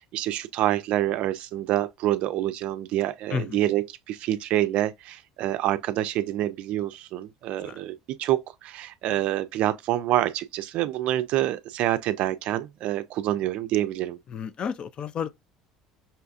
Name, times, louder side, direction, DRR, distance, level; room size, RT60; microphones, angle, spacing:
voice 1, 0.0-14.2, right 13 dB, 60° right, 0.4 m, -27 dB
voice 2, 14.3-15.3, left 7 dB, 45° left, 0.4 m, -31 dB
5.5 x 2.3 x 2.5 m
hypercardioid pair, 75°, 2 cm